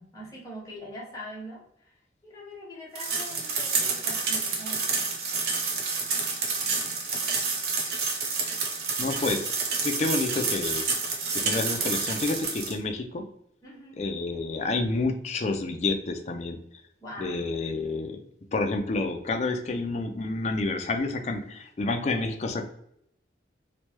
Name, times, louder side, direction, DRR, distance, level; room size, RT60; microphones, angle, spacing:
voice 1, 0.0-1.9 2.2-5.1 13.6-14.0 17.0-17.5, equal, 20° left, -5 dB, 1.1 m, -42 dB
sound 1, 3.0-12.7, right 4 dB, 60° right, 0.7 m, -29 dB
voice 2, 9.0-9.6 9.8-10.8 11.3-13.2 14.0-16.6 17.2-18.2 18.5-22.6, left 3 dB, 40° left, 5 dB, 0.4 m, -29 dB
3.1 x 2.2 x 2.9 m, 0.73 s
head